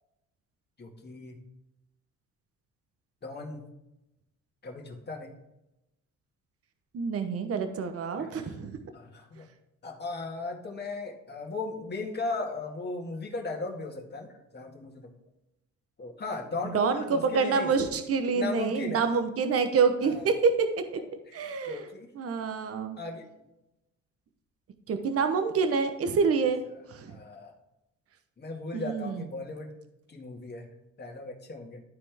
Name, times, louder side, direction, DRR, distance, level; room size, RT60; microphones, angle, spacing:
voice 1, 0.8-1.4 3.2-3.7 4.6-5.3 8.2-8.6 8.9-9.5 9.8-15.1 16.0-17.7 18.3-19.1 20.0-20.4 21.0-22.1 23.0-23.2 27.1-27.5 28.4-29.7 30.1-30.7 31.0-31.8, left 3 dB, 35° left, 0 dB, 1.9 m, -37 dB
voice 2, 6.9-8.8 16.7-17.0 17.3-20.7 21.3-21.8 22.2-23.0 24.9-26.6 26.9-27.2 28.7-29.3, right 5 dB, 50° right, 8 dB, 0.9 m, -27 dB
12.5 x 4.2 x 3.4 m, 0.90 s
cardioid pair, 95°, 31 cm